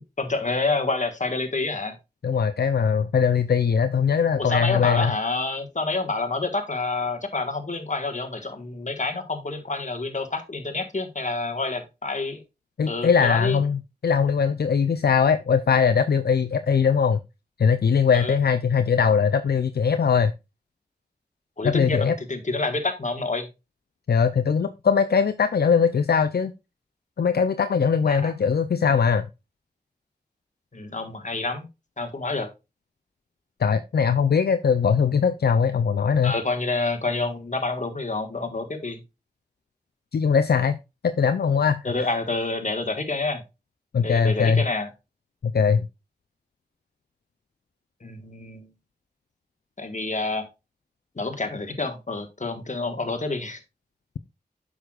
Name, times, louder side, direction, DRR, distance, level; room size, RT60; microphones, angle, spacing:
voice 1, 0.2-1.9 4.4-12.4 12.9-13.6 18.1-18.4 21.6-23.5 28.1-28.3 30.7-31.7 32.0-32.5 36.2-39.0 41.8-43.4 44.0-44.9 48.0-48.7 49.8-50.5 51.1-53.6, left 3 dB, 45° left, 6 dB, 1.5 m, -28 dB
voice 2, 2.2-5.1 12.8-17.2 17.6-20.3 21.6-22.2 24.1-26.5 27.2-29.3 33.6-36.4 40.1-40.8 41.0-41.9 43.9-44.6 45.4-45.8, left 6 dB, 70° left, 11 dB, 0.5 m, -21 dB
8.0 x 6.3 x 2.4 m, 0.25 s
cardioid pair, 40°, 17 cm